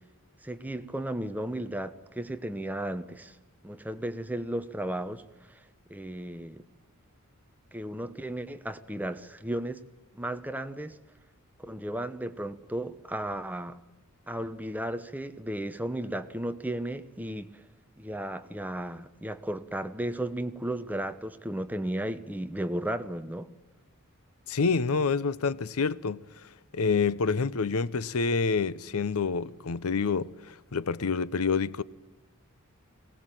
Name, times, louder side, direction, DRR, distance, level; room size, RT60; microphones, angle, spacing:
voice 1, 0.4-3.4 3.6-5.2 5.5-5.6 5.9-6.6 7.7-9.8 10.1-11.0 11.6-13.8 14.3-17.6 18.0-23.5, right 1 dB, 10° right, 0.9 m, -34 dB
voice 2, 24.5-26.2 26.7-31.8, left 5 dB, 85° left, 0.7 m, -27 dB
21.5 x 18.0 x 9.1 m
head